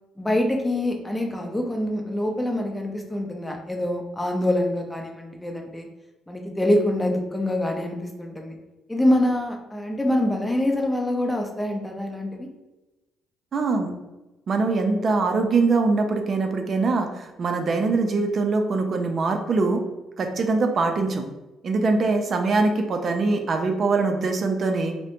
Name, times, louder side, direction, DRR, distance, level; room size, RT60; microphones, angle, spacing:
voice 1, 0.2-5.9 6.3-8.6 8.9-12.5, left 1 dB, 10° left, 2 dB, 0.5 m, -25 dB
voice 2, 13.5-13.9 14.5-19.8 20.2-21.2 21.6-24.9, right 3 dB, 50° right, 5 dB, 0.4 m, -23 dB
2.4 x 2.1 x 2.9 m, 1.1 s
cardioid pair, 80°, 0 cm